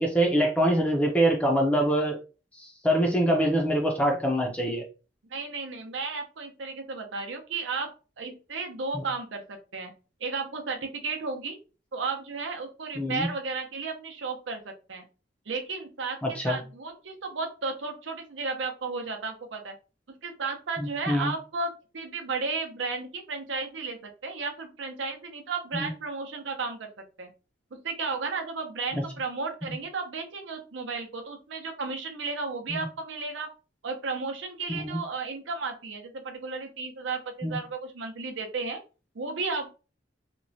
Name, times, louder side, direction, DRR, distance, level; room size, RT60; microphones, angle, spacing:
voice 1, 0.0-2.2 2.6-4.8 8.9-9.0 13.0-13.3 16.2-16.6 20.8-21.3 25.7-25.9 29.6-29.7 32.7-32.9 34.7-35.0 37.4-37.6, right 1 dB, 10° left, 1 dB, 0.4 m, -25 dB
voice 2, 5.2-9.9 10.2-11.6 11.9-15.0 15.5-19.8 20.1-27.3 27.7-33.5 33.8-38.8 39.1-39.7, right 4 dB, 90° right, 4 dB, 0.6 m, -34 dB
2.9 x 2.1 x 2.6 m, 0.33 s
head